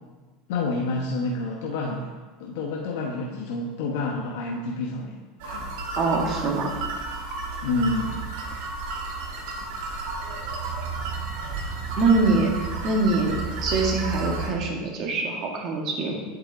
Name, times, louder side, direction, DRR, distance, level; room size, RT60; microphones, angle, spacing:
voice 1, 0.5-2.1 2.4-5.7 7.6-8.4, left 3 dB, 75° left, -1 dB, 1.0 m, -29 dB
sound 1, 5.4-14.5, right 3 dB, 75° right, 1.8 m, -32 dB
voice 2, 6.0-6.7 12.0-16.2, right 3 dB, 50° right, 0 dB, 1.9 m, -24 dB
8.2 x 7.1 x 3.9 m, 1.3 s
supercardioid pair, 110°, 0 cm